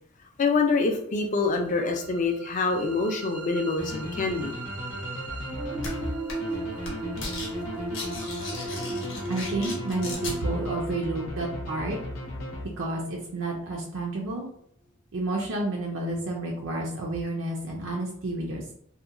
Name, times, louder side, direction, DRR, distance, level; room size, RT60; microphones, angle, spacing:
voice 1, 0.4-4.5, left 3 dB, 35° left, 3 dB, 0.4 m, -25 dB
sound 1, 1.6-13.7, right 2 dB, 80° right, 0.8 m, -37 dB
sound 2, 3.8-13.1, left 1 dB, 85° left, 0.7 m, -37 dB
sound 3, 5.8-5.9 6.3-6.5 6.8-7.5 7.8-10.4, left 3 dB, 55° left, 0.7 m, -36 dB
voice 2, 9.3-12.0 12.8-14.5 15.1-18.7, right 2 dB, 55° right, -1 dB, 0.4 m, -30 dB
2.7 x 2.1 x 2.5 m, 0.66 s
head